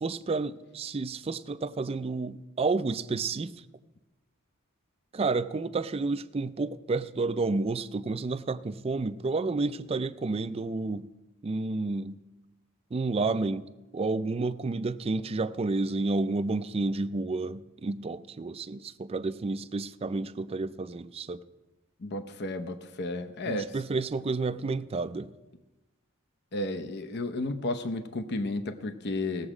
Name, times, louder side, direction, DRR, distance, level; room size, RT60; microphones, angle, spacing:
voice 1, 0.0-3.5 5.1-11.1 11.4-12.2 12.9-21.4 23.5-25.3, right 3 dB, 30° right, 0.4 m, -30 dB
voice 2, 22.0-23.7 26.5-29.5, left 2 dB, 50° left, 0.7 m, -33 dB
18.5 x 7.3 x 4.9 m
head